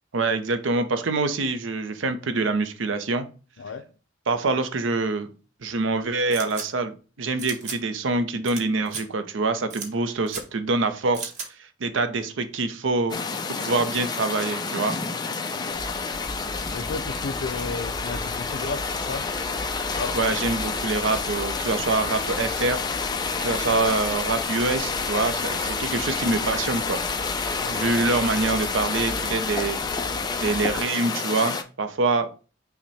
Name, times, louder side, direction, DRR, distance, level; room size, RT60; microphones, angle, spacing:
voice 1, 0.1-3.3 4.3-5.3 5.6-11.3 11.6-13.2 13.5-14.9 20.1-22.8 23.4-27.0 27.7-29.8 30.4-32.3, right 3 dB, 90° right, 10 dB, 0.6 m, -25 dB
voice 2, 3.6-3.9 15.6-15.8 16.7-19.2 20.0-20.2 27.6-27.9, left 4 dB, 75° left, 11 dB, 0.5 m, -33 dB
sound 1, 6.3-6.7 7.4-7.8 8.4-8.6 8.9-9.0 9.7-9.9 10.3-10.4 11.1-11.5, right 5 dB, 40° right, 0.8 m, -34 dB
sound 2, 13.1-31.6, left 4 dB, 20° left, 0.4 m, -29 dB
sound 3, 15.7-30.8, equal, 5° left, 2.2 m, -40 dB
5.7 x 2.2 x 4.0 m, 0.35 s
head